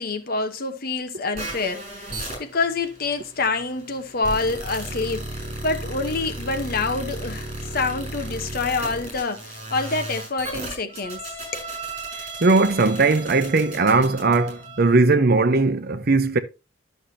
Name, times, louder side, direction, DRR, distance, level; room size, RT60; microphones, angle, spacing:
voice 1, 0.0-11.2 11.5-11.7, left 3 dB, 50° left, 1.0 m, -27 dB
sound 1, 1.3-14.9, right 2 dB, 35° right, 6.3 m, -35 dB
voice 2, 12.4-16.4, right 3 dB, 55° right, 0.8 m, -19 dB
12.0 x 6.5 x 2.8 m
head